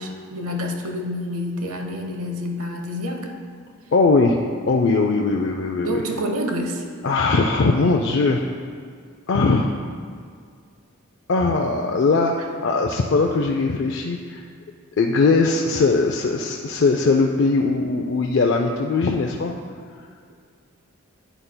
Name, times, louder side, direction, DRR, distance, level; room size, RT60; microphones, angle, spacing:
voice 1, 0.0-3.3 5.7-6.8, equal, 85° right, 3 dB, 0.9 m, -28 dB
voice 2, 3.9-4.4 4.7-6.0 7.0-8.4 9.3-9.8 11.3-14.4 15.0-19.6, left 3 dB, 55° left, 1 dB, 0.4 m, -20 dB
11.0 x 9.1 x 2.2 m, 2.1 s
head